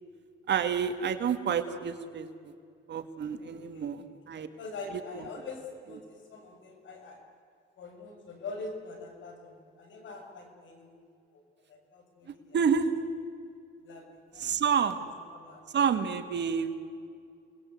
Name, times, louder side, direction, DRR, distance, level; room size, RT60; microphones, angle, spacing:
voice 1, 0.5-2.5 2.9-4.5 4.9-5.0 12.5-12.9 14.4-15.1 15.7-16.8, right 7 dB, 60° right, 8 dB, 2.3 m, -29 dB
voice 2, 3.4-3.9 4.3-7.2 7.8-11.0 11.3-11.4 11.7-12.6 13.8-14.1 14.3-14.5 15.0-15.1 15.3-15.6, left 3 dB, 70° left, 4 dB, 6.6 m, -44 dB
29.5 x 21.0 x 8.1 m, 2.3 s
cardioid pair, 90°, 20 cm